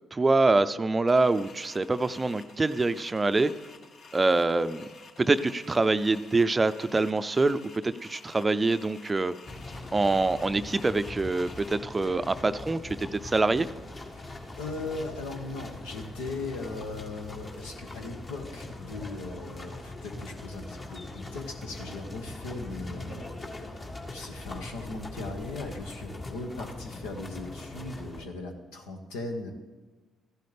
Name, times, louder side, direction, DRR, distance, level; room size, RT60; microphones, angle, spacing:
voice 1, 0.1-3.5 4.1-4.9 5.2-9.3 9.9-13.7, right 3 dB, 25° right, 13 dB, 0.5 m, -25 dB
sound 1, 1.1-11.7, left 4 dB, 55° left, 1.0 m, -51 dB
sound 2, 9.4-28.2, left 2 dB, 40° left, 1.9 m, -41 dB
voice 2, 14.1-29.5, left 3 dB, 80° left, 3 dB, 1.3 m, -38 dB
14.5 x 11.5 x 3.4 m, 1.3 s
hypercardioid pair, 45°, 0 cm